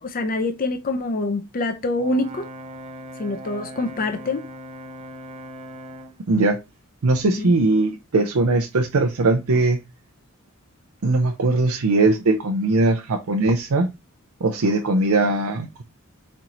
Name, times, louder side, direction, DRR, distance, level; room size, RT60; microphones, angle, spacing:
voice 1, 0.0-2.4 3.2-4.5 7.4-7.5, left 2 dB, 40° left, 0.5 m, -25 dB
Brass instrument, 2.0-6.2, equal, 30° right, 0.5 m, -39 dB
voice 2, 6.3-6.6 7.0-9.8 11.0-13.9 14.4-15.8, right 2 dB, 75° right, 0.6 m, -20 dB
4.3 x 3.0 x 3.8 m
head